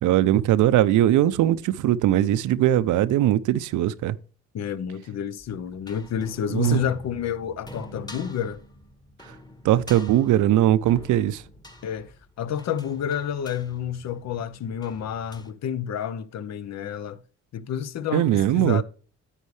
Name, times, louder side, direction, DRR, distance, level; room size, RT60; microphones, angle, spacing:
voice 1, 0.0-4.2 6.5-6.8 9.6-11.4 18.1-18.8, right 13 dB, 75° right, 0.6 m, -20 dB
voice 2, 4.5-8.6 10.0-10.1 11.8-17.2 17.5-18.8, left 8 dB, 60° left, 0.7 m, -30 dB
sound 1, 5.4-15.5, left 1 dB, 15° left, 1.2 m, -46 dB
9.9 x 8.2 x 3.2 m
cardioid pair, 90°, 30 cm